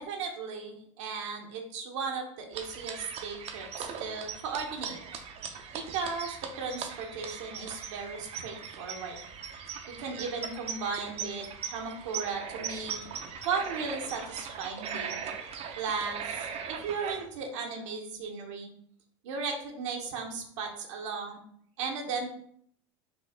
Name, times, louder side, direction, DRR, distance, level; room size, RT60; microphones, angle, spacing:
voice 1, 0.0-5.0 5.7-9.2 9.9-13.0 13.4-15.2 15.8-18.7 19.2-21.4 21.8-22.3, right 5 dB, 75° right, 1 dB, 1.0 m, -36 dB
sound 1, 2.5-17.2, right 7 dB, 40° right, 0.7 m, -40 dB
5.2 x 2.8 x 3.6 m, 0.65 s
hypercardioid pair, 100°, 16 cm